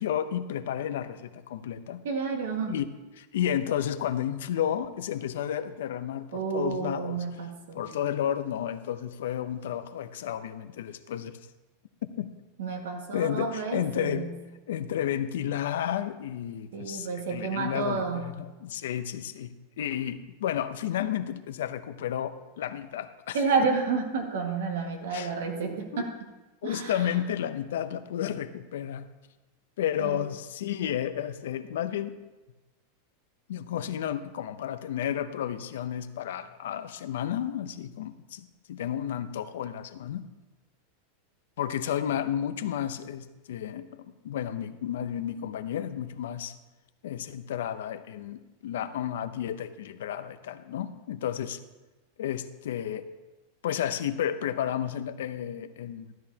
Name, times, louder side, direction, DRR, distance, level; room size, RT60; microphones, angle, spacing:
voice 1, 0.0-2.0 2.7-2.8 3.2-7.2 7.7-11.4 12.2-12.3 13.1-14.3 14.7-23.4 25.1-25.3 25.9-26.0 26.6-29.1 29.8-32.1 33.5-40.3 41.6-46.5 47.0-51.6 52.2-53.0 53.6-56.1, left 10 dB, 85° left, 11 dB, 0.6 m, -32 dB
voice 2, 2.0-2.8 6.3-8.0 12.6-14.3 16.7-18.3 23.3-26.1 26.6-27.2 30.0-30.2, right 5 dB, 85° right, 2 dB, 1.8 m, -30 dB
12.5 x 11.0 x 2.8 m, 1.1 s
supercardioid pair, 155°, 0 cm